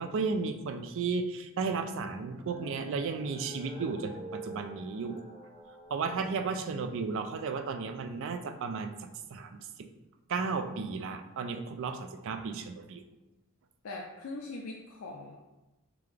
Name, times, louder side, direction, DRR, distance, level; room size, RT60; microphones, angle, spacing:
voice 1, 0.0-5.2 5.9-8.9 9.3-9.9 10.3-13.0, right 4 dB, 65° right, 8 dB, 0.4 m, -34 dB
sound 1, 2.2-6.6, right 1 dB, 30° left, 1.2 m, -47 dB
voice 2, 13.8-15.4, left 2 dB, 80° left, 0 dB, 0.5 m, -41 dB
3.7 x 3.4 x 3.3 m, 1.0 s
head